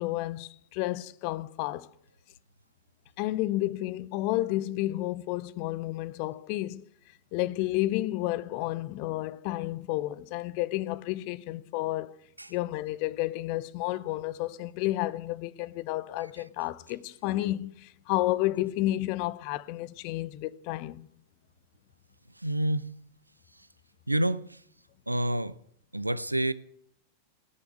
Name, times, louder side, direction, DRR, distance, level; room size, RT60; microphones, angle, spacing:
voice 1, 0.0-1.9 3.2-6.9 7.3-12.2 12.5-21.1, left 16 dB, 45° left, 0.6 m, -31 dB
voice 2, 22.4-22.9 24.1-24.6 25.1-25.5 25.9-26.5, right 1 dB, 85° right, 0.5 m, -28 dB
18.0 x 7.1 x 8.3 m
figure-of-eight pair, 90°, 0 cm